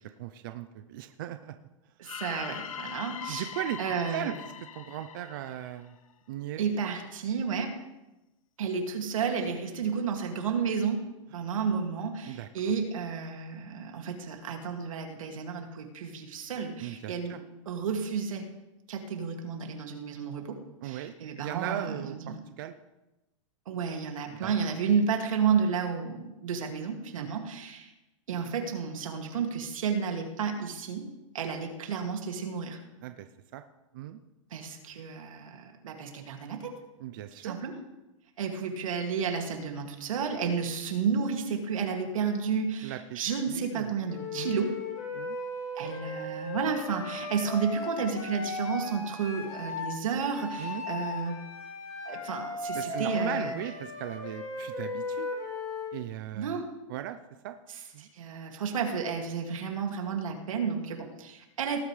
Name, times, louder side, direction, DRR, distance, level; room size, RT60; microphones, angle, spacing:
voice 1, 0.2-1.5 2.1-2.2 3.3-3.8 4.1-4.3 4.8-5.9 6.3-6.6 12.3-12.5 16.8-17.4 20.8-22.7 24.4-24.5 27.2-27.4 33.0-33.3 33.5-33.6 33.9-34.2 37.0-37.6 42.8-43.2 43.5-43.9 44.3-44.6 45.1-45.4 50.6-50.8 52.7-55.3 55.9-56.5 56.9-57.2 57.4-57.5 57.9-58.1, right 12 dB, 40° right, 8 dB, 0.5 m, -37 dB
sound 1, 2.0-6.1, left 9 dB, 90° left, 0.8 m, -41 dB
voice 2, 2.0-3.5 3.8-4.3 6.6-7.8 8.6-11.0 11.3-17.4 17.7-18.5 18.9-20.6 20.8-22.4 23.7-27.9 28.3-31.1 31.3-32.8 34.5-36.7 37.3-37.8 38.4-44.7 45.8-51.4 52.0-53.5 56.3-56.7 57.7-61.8, right 6 dB, 80° right, 3 dB, 2.3 m, -32 dB
Wind instrument woodwind instrument, 44.1-49.9 50.3-55.9, left 3 dB, 20° left, 2.2 m, -36 dB
18.5 x 8.9 x 3.3 m, 1.0 s
supercardioid pair, 170°, 17 cm